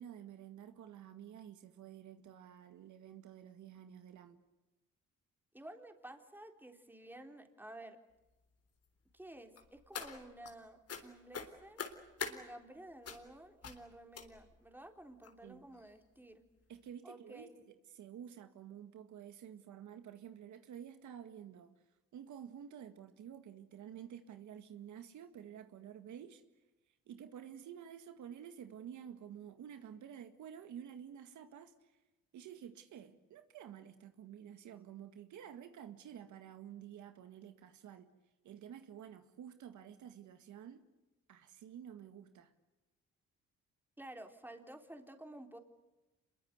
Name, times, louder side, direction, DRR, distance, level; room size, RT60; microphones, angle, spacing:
voice 1, 0.0-4.4 15.4-15.7 16.7-21.7 22.1-26.4 27.1-32.0 32.3-38.1 38.4-40.9 41.3-42.5, right 9 dB, 75° right, 1.9 m, -51 dB
voice 2, 5.5-8.0 9.1-11.8 12.2-16.4 17.0-17.6 44.0-45.6, right 1 dB, 5° right, 3.6 m, -52 dB
sound 1, 9.6-10.5 10.9-11.0 11.3-12.4 13.0-13.3 13.6-13.8 14.1-14.6 15.2-15.3 15.7-15.9 16.2-16.3, left 6 dB, 55° left, 3.6 m, -43 dB
26.5 x 22.5 x 8.1 m
cardioid pair, 90°, 30 cm